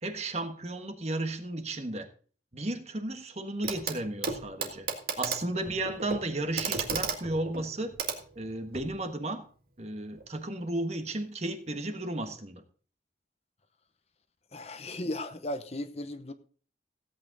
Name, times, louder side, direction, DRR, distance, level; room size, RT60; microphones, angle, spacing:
voice 1, 0.0-2.1 2.5-4.9 5.2-7.9 8.3-9.4 9.8-12.6, right 2 dB, 35° right, 1.4 m, -34 dB
Clock, 3.6-4.0 4.2-8.9 10.2-10.3, right 5 dB, 55° right, 1.8 m, -35 dB
voice 2, 14.5-16.3, left 1 dB, 35° left, 0.8 m, -36 dB
16.5 x 8.6 x 4.0 m
head